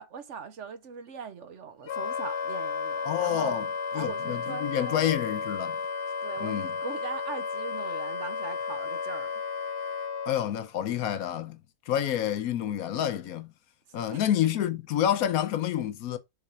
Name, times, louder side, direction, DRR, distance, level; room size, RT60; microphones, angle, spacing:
voice 1, 0.0-3.6 3.9-5.1 6.2-9.3 13.9-14.2, right 6 dB, 55° right, 1.1 m, -40 dB
Wind instrument woodwind instrument, 1.9-10.4, left 5 dB, 60° left, 0.9 m, -33 dB
voice 2, 3.1-3.7 3.9-5.8 6.4-6.7 10.3-11.6 11.9-13.5 13.9-16.2, left 10 dB, 75° left, 1.1 m, -28 dB
7.1 x 4.0 x 4.2 m
omnidirectional pair, 1.6 m